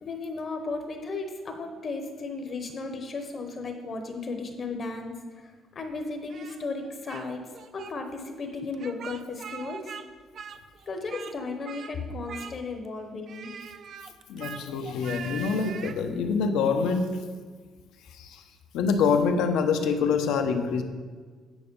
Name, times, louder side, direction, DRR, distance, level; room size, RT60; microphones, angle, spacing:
voice 1, 0.0-9.9 10.9-13.5, left 3 dB, 30° left, 5 dB, 0.8 m, -35 dB
Speech, 6.3-7.3 7.5-7.9 8.7-10.1 10.3-11.4 11.6-11.9 12.3-12.9 13.3-16.0, right 7 dB, 40° right, 0.4 m, -42 dB
voice 2, 14.3-17.3 18.1-18.4 18.7-20.8, left 5 dB, 85° left, 6 dB, 0.8 m, -25 dB
9.3 x 5.7 x 5.3 m, 1.5 s
cardioid pair, 175°, 0 cm